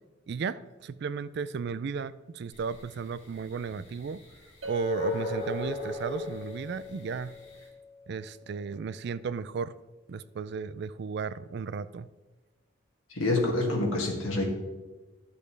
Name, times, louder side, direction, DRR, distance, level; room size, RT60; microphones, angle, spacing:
voice 1, 0.3-4.2 4.6-7.3 8.1-9.7 10.1-12.1, right 5 dB, 55° right, 16 dB, 0.3 m, -34 dB
sound 1, 2.5-7.7, left 2 dB, 65° left, 2.8 m, -37 dB
Chink clink, 4.6-8.8, left 3 dB, 80° right, 1.1 m, -42 dB
voice 2, 13.1-14.4, left 2 dB, 80° left, 0 dB, 2.0 m, -27 dB
12.0 x 6.8 x 3.3 m, 1.2 s
head